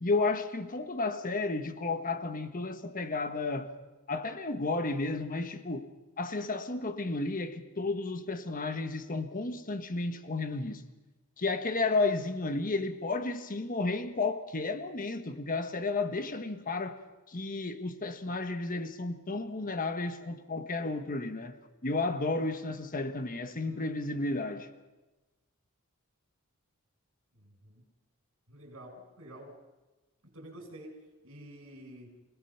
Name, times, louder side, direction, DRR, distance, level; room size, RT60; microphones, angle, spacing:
voice 1, 0.0-3.7 4.1-5.9 6.2-10.8 11.4-17.0 17.3-21.5 21.8-24.7, left 3 dB, 40° left, 1.3 m, -32 dB
voice 2, 27.3-27.9 28.5-29.6 30.2-32.2, right 1 dB, 75° right, 6.4 m, -49 dB
29.0 x 17.5 x 5.8 m
head